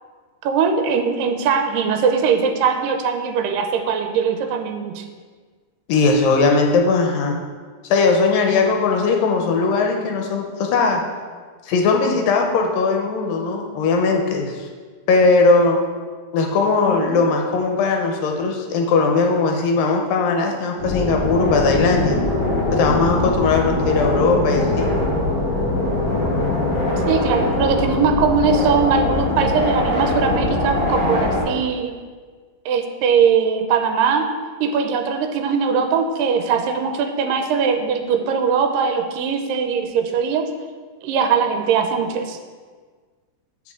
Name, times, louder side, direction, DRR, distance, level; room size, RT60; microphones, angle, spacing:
voice 1, 0.4-5.0 27.1-32.0 32.7-34.3 34.6-40.5 41.0-42.4, right 6 dB, 85° right, 6 dB, 2.2 m, -20 dB
voice 2, 5.9-7.4 7.8-11.0 11.7-14.7 15.1-15.8 16.3-22.2 22.7-24.9, left 4 dB, 80° left, 2 dB, 2.5 m, -19 dB
sound 1, 20.8-31.4, left 2 dB, 65° left, 3.5 m, -21 dB
8.1 x 6.8 x 3.7 m, 1.5 s
omnidirectional pair, 4.0 m